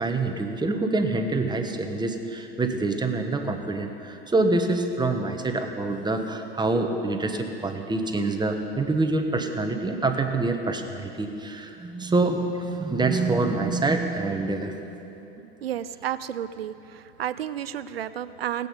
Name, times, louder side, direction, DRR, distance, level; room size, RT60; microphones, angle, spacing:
voice 1, 0.0-14.7, right 3 dB, 15° right, 5 dB, 1.3 m, -26 dB
voice 2, 15.6-16.7 17.2-18.7, right 10 dB, 85° right, 14 dB, 0.5 m, -31 dB
17.5 x 8.4 x 5.4 m, 2.9 s
hypercardioid pair, 80°, 29 cm